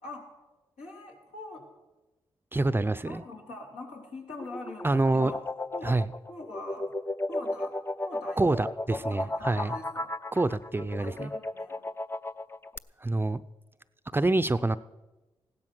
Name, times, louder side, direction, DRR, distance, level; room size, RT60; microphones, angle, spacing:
voice 1, 0.8-1.6 3.1-5.4 5.7-6.0 6.3-6.9 7.3-7.7 8.0-8.5 8.9-10.1 11.0-11.8, left 2 dB, 80° left, -2 dB, 3.8 m, -43 dB
voice 2, 2.5-3.2 4.8-5.3 5.8-6.1 8.4-9.7 10.3-11.3 13.0-13.4 14.1-14.8, right 2 dB, 20° right, 14 dB, 0.6 m, -26 dB
sound 1, 4.3-12.8, left 2 dB, 20° left, 0.6 m, -34 dB
15.5 x 12.0 x 6.1 m, 1.1 s
supercardioid pair, 45°, 11 cm